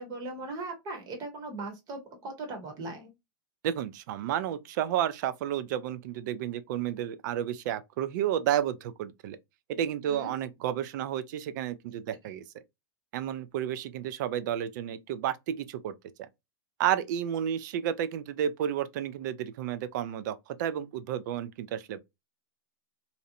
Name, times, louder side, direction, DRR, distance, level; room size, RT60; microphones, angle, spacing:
voice 1, 0.0-3.1 10.1-10.3, right 2 dB, 35° right, 0.9 m, -39 dB
voice 2, 3.6-9.4 9.7-12.4 13.1-15.9 16.8-22.0, right 10 dB, 55° right, 0.4 m, -31 dB
2.6 x 2.0 x 2.6 m
hypercardioid pair, 140°, 12 cm